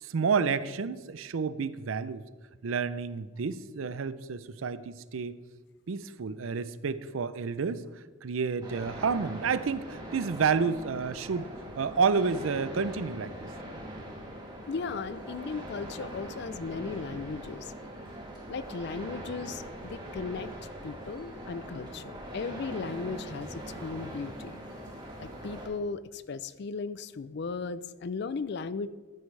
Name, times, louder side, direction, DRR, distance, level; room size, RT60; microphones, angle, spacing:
voice 1, 0.0-2.2 2.6-5.4 5.9-13.5, right 5 dB, 80° right, 15 dB, 0.5 m, -30 dB
sound 1, 8.6-25.7, right 1 dB, 25° right, 2.7 m, -42 dB
voice 2, 14.7-17.7 18.5-20.5 20.8-24.6 25.2-28.9, left 4 dB, 55° left, 15 dB, 0.4 m, -36 dB
13.5 x 9.5 x 3.3 m, 1.3 s
head